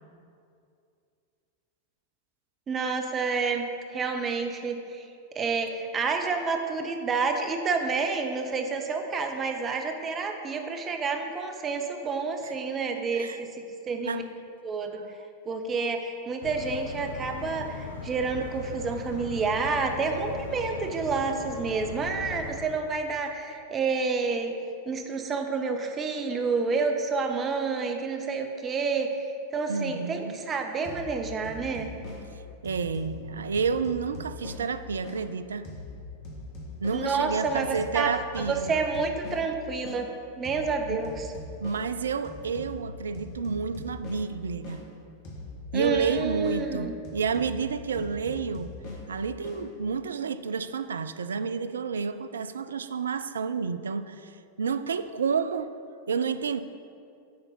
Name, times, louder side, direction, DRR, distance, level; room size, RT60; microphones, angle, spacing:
voice 1, 2.7-5.1 5.3-13.5 13.9-14.2 14.6-15.0 15.5-24.5 24.9-31.9 36.9-38.1 38.5-40.1 40.4-41.3 45.7-46.9, right 4 dB, 25° right, 4 dB, 0.7 m, -29 dB
sound 1, 16.4-22.7, left 6 dB, 60° left, 0.6 m, -39 dB
voice 2, 29.7-30.4 32.6-35.7 36.8-38.7 40.9-41.0 41.6-44.8 45.7-48.7 49.1-55.7 56.1-56.6, right 5 dB, 70° right, 12 dB, 0.3 m, -30 dB
sound 2, 30.8-35.2 35.6-40.0 40.4-44.8 45.2-49.6, left 2 dB, 45° left, 1.6 m, -42 dB
8.6 x 4.0 x 5.6 m, 2.4 s
figure-of-eight pair, 90°, 0 cm